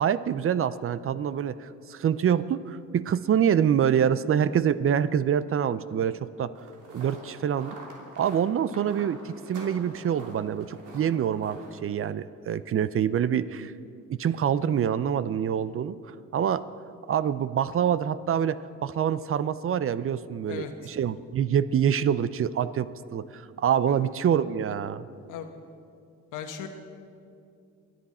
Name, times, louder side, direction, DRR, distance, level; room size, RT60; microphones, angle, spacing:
voice 1, 0.0-6.5 6.9-7.8 8.2-13.7 14.1-16.0 16.3-16.7 17.1-25.0, right 8 dB, 45° right, 16 dB, 0.6 m, -26 dB
sound 1, 6.5-11.7, right 2 dB, 75° right, 3.0 m, -45 dB
voice 2, 26.3-26.7, left 8 dB, 85° left, 6 dB, 1.4 m, -37 dB
24.5 x 10.0 x 4.3 m, 2.5 s
cardioid pair, 90°, 30 cm